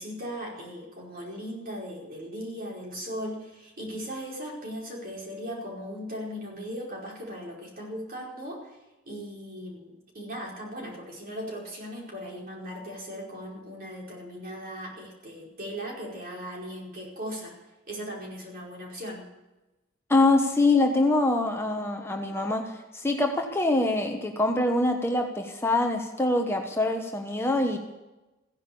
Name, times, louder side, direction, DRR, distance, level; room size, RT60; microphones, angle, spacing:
voice 1, 0.0-8.8 9.0-17.6 17.9-19.3, equal, 45° right, -2 dB, 4.9 m, -38 dB
voice 2, 20.1-27.8, left 2 dB, 10° left, 3 dB, 1.2 m, -24 dB
16.0 x 10.5 x 7.0 m, 1.0 s
head